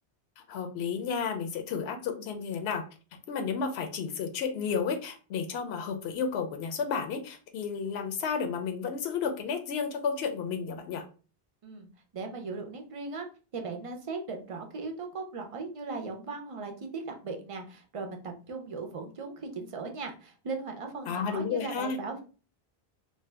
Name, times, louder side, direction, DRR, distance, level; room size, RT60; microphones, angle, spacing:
voice 1, 0.5-2.9 3.3-11.0 21.1-22.0, left 6 dB, 85° left, 6 dB, 0.8 m, -32 dB
voice 2, 12.1-13.3 13.5-22.2, right 4 dB, 45° right, 4 dB, 0.4 m, -38 dB
2.7 x 2.2 x 3.2 m, 0.36 s
omnidirectional pair, 1.0 m